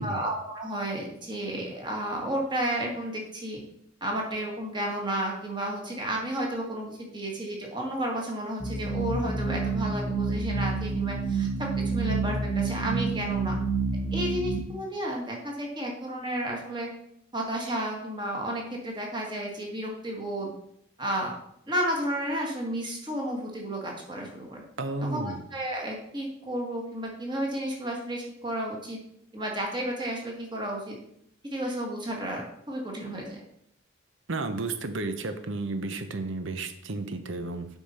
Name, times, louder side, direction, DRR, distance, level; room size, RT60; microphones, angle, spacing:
voice 1, 0.0-3.6 4.0-13.6 14.1-16.9 17.3-20.5 21.0-21.3 21.7-24.6 25.0-29.0 29.3-31.0 31.5-33.4, right 1 dB, 20° right, 0 dB, 1.6 m, -32 dB
sound 1, 8.6-14.6, right 4 dB, 20° left, 0.9 m, -28 dB
voice 2, 24.8-25.4 34.3-37.7, right 3 dB, 65° right, 9 dB, 0.7 m, -32 dB
8.2 x 5.4 x 4.3 m, 0.73 s
head